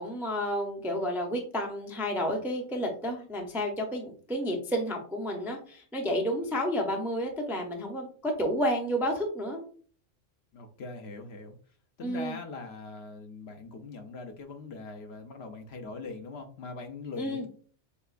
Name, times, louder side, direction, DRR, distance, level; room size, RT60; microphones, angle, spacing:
voice 1, 0.0-9.6 12.0-12.4 17.2-17.5, equal, 5° right, 1 dB, 0.4 m, -31 dB
voice 2, 10.5-11.6 12.0-17.5, left 3 dB, 60° left, 5 dB, 0.8 m, -41 dB
6.7 x 2.2 x 2.5 m, 0.44 s
omnidirectional pair, 1.3 m